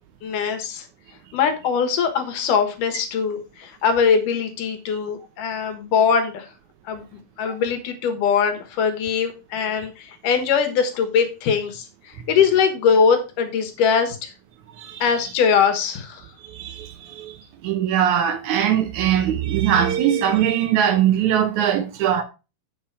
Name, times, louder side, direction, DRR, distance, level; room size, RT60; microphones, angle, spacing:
voice 1, 0.2-0.9 1.3-6.5 6.9-14.3 15.0-16.3, left 6 dB, 75° left, 2.9 m, -21 dB
voice 2, 16.4-22.2, right 10 dB, 70° right, 2.1 m, -21 dB
8.7 x 5.8 x 4.7 m
omnidirectional pair, 3.8 m